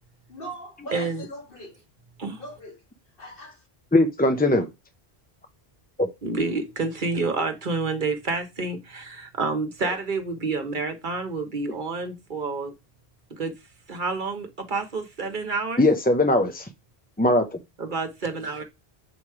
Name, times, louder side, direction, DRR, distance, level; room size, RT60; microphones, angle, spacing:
voice 1, 0.3-1.8 2.4-2.8 3.2-3.7, equal, 60° left, 1.8 m, -40 dB
voice 2, 0.9-1.3 2.2-2.4 6.2-12.7 13.3-13.5 13.9-15.9 17.8-18.6, right 3 dB, 55° right, 1.2 m, -29 dB
voice 3, 3.9-4.7 6.0-6.1 15.8-16.7 17.2-17.6, left 1 dB, 15° left, 0.4 m, -20 dB
7.1 x 3.1 x 4.8 m
omnidirectional pair, 1.0 m